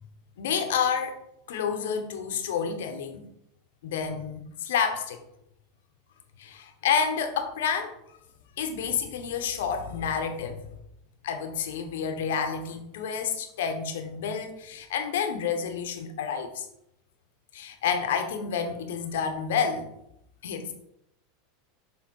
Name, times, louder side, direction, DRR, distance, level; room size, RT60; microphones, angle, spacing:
voice 1, 0.4-1.1 1.5-3.2 3.8-5.2 6.4-7.9 8.6-10.6 11.2-16.7 17.5-19.9 20.4-20.7, left 7 dB, 75° left, 6 dB, 1.0 m, -29 dB
6.8 x 3.4 x 4.6 m, 0.79 s
hypercardioid pair, 100°, 0 cm